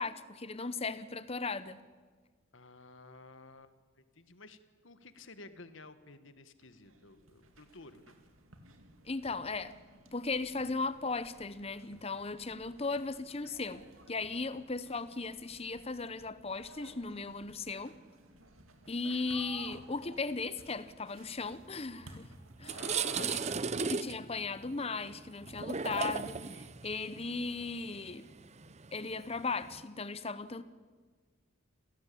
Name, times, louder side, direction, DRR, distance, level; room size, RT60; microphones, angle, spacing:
voice 1, 0.0-1.8 9.1-9.7 10.1-17.9 18.9-22.3 22.6-22.8 23.2-23.4 23.9-28.2 28.9-30.6, left 3 dB, 30° left, 0.9 m, -37 dB
voice 2, 2.5-8.2 22.7-23.6, left 3 dB, 65° left, 1.5 m, -53 dB
sound 1, 6.6-23.6, right 2 dB, 80° right, 2.6 m, -56 dB
sound 2, 22.0-22.1 22.5-29.8, right 5 dB, 30° right, 0.7 m, -37 dB
28.0 x 17.0 x 8.6 m
head